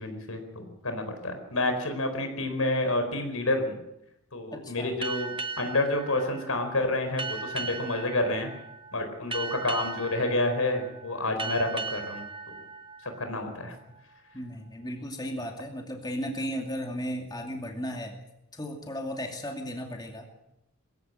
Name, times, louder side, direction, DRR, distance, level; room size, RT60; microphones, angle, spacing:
voice 1, 0.0-3.8 4.3-5.3 5.6-8.5 8.9-12.5 13.0-13.7, left 2 dB, 85° left, 6 dB, 4.5 m, -29 dB
voice 2, 4.5-5.0 14.3-18.2 18.5-20.5, equal, 20° left, 2 dB, 2.5 m, -35 dB
sound 1, 5.0-14.2, right 4 dB, 25° right, 1.1 m, -38 dB
21.5 x 15.5 x 7.8 m, 0.87 s
head